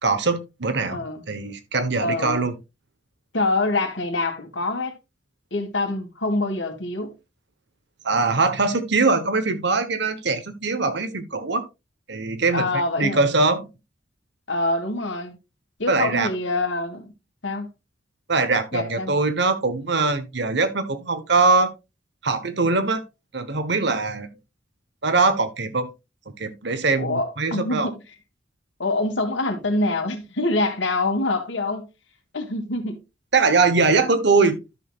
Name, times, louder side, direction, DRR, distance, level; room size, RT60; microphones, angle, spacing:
voice 1, 0.0-2.6 8.0-11.7 12.1-12.7 13.0-13.7 15.9-16.3 18.3-21.7 22.2-23.0 23.3-24.3 25.0-25.9 26.4-27.9 33.3-34.8, right 3 dB, 60° right, 1.1 m, -22 dB
voice 2, 0.8-1.2 2.0-2.4 3.3-4.9 5.5-7.1 12.5-13.3 14.5-15.4 15.8-17.1 17.4-17.7 18.7-19.1 27.0-27.9 28.8-31.9 32.3-33.0, left 2 dB, 75° left, 1.9 m, -25 dB
12.5 x 6.4 x 2.4 m
head